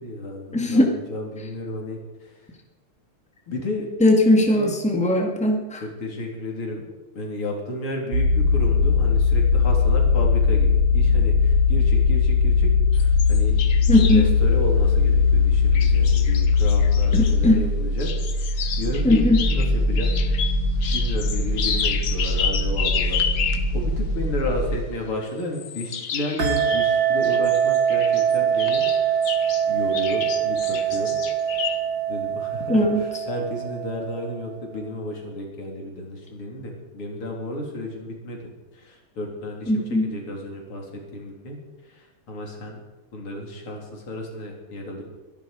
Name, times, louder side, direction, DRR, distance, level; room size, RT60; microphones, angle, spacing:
voice 1, 0.0-2.4 3.5-3.9 4.5-4.7 5.8-6.8 7.1-13.5 14.1-18.1 18.7-19.2 19.5-20.2 20.9-23.2 23.7-28.8 29.7-31.2 32.1-38.5 38.7-41.6 41.9-42.8 43.1-45.0, left 1 dB, 85° left, 0 dB, 4.2 m, -32 dB
voice 2, 0.5-0.9 4.0-5.8 13.9-14.2 17.1-17.6 19.0-19.4 32.7-33.0 39.7-40.0, left 1 dB, 5° left, 2 dB, 2.0 m, -18 dB
sound 1, 8.1-24.8, left 4 dB, 85° right, 4.3 m, -20 dB
sound 2, 12.9-14.3 15.7-17.4 18.0-23.7 25.4-29.6 29.9-31.8, left 7 dB, 55° left, 1.6 m, -31 dB
sound 3, 26.4-34.5, right 9 dB, 55° right, 3.1 m, -23 dB
23.0 x 11.0 x 5.1 m, 1.1 s
omnidirectional pair, 2.4 m